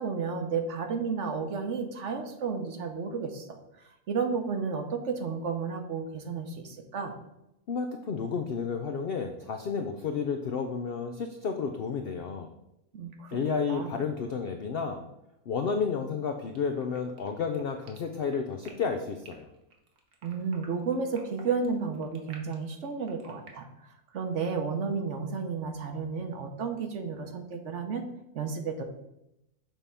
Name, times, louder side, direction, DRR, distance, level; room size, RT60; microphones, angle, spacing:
voice 1, 0.0-3.6 4.1-7.1 12.9-13.4 13.7-14.0 20.2-23.7 24.1-28.0 28.3-28.8, right 5 dB, 55° right, 5 dB, 1.0 m, -32 dB
voice 2, 7.7-12.5 13.3-15.0 15.5-19.5, left 5 dB, 70° left, 6 dB, 0.5 m, -31 dB
sound 1, 16.5-23.5, right 4 dB, 80° right, 1.6 m, -52 dB
7.4 x 3.4 x 5.6 m, 0.86 s
omnidirectional pair, 1.6 m